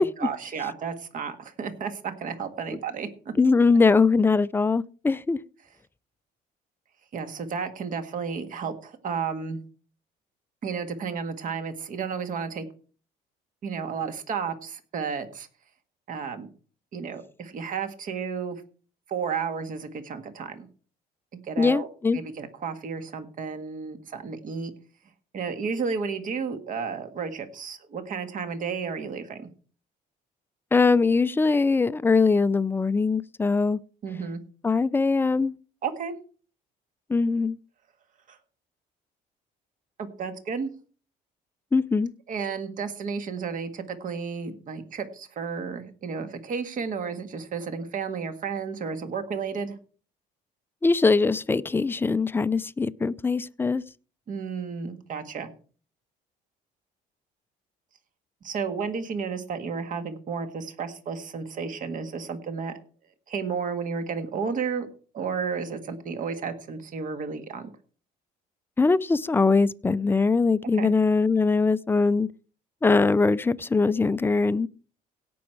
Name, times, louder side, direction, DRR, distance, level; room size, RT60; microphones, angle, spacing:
voice 1, 0.0-3.3 7.1-9.6 10.6-12.7 13.6-15.5 16.1-16.5 16.9-18.6 19.1-20.7 21.3-24.7 25.3-29.5 34.0-34.4 35.8-36.2 38.3-38.4 40.0-40.7 42.3-49.8 54.3-55.5 58.4-62.7 63.3-64.9 65.1-67.7 70.8-70.9, right 5 dB, 50° right, 1.7 m, -32 dB
voice 2, 3.4-5.4 21.6-22.2 30.7-33.8 34.6-35.5 37.1-37.6 41.7-42.1 50.8-53.8 68.8-72.3 72.8-74.7, left 4 dB, 15° left, 0.4 m, -22 dB
17.0 x 6.2 x 4.6 m
cardioid pair, 110°, 17 cm